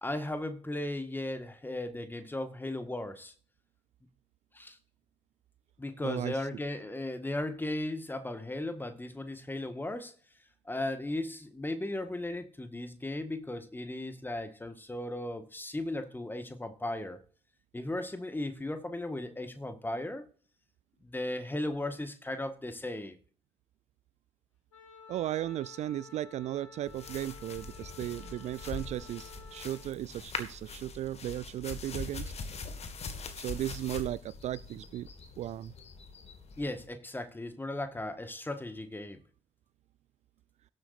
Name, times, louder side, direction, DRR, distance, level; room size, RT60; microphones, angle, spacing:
voice 1, 0.0-3.3 4.5-4.8 5.8-10.1 10.6-17.2 17.7-20.2 21.0-23.2 36.6-39.2, left 1 dB, 10° left, 1.7 m, -36 dB
voice 2, 6.0-6.5 25.1-32.3 33.4-35.1 35.4-35.7, right 13 dB, 45° right, 0.4 m, -36 dB
Wind instrument woodwind instrument, 24.7-29.9, left 6 dB, 80° left, 2.1 m, -53 dB
sound 1, 26.9-36.9, left 4 dB, 45° left, 1.8 m, -43 dB
19.0 x 7.8 x 2.6 m
figure-of-eight pair, 45°, 16 cm